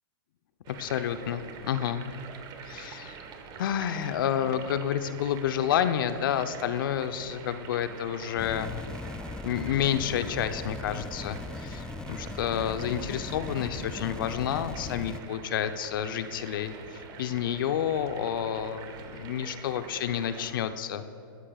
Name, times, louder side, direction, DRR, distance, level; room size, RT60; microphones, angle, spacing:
sound 1, 0.6-20.5, right 6 dB, 35° right, 1.2 m, -45 dB
voice 1, 0.7-2.0 2.6-3.2 3.6-8.8 9.4-21.0, left 9 dB, 65° left, 10 dB, 0.8 m, -30 dB
sound 2, 8.4-15.2, left 3 dB, 5° left, 0.4 m, -39 dB
22.0 x 13.0 x 2.4 m, 2.6 s
hypercardioid pair, 115°, 12 cm